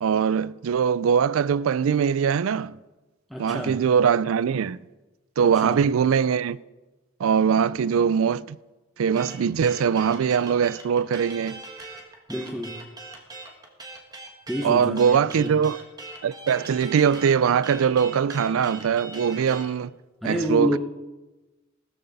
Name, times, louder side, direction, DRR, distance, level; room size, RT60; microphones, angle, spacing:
voice 1, 0.0-2.8 3.4-4.8 5.4-6.6 7.2-8.6 9.0-11.6 14.6-15.8 16.2-19.9 20.2-20.8, right 7 dB, 75° right, 0.4 m, -22 dB
voice 2, 3.3-3.8 5.4-5.8 12.3-12.8 14.5-15.5 20.2-20.8, equal, ahead, 0.9 m, -29 dB
sound 1, 9.2-19.7, right 3 dB, 20° right, 1.8 m, -41 dB
16.0 x 13.5 x 4.0 m
head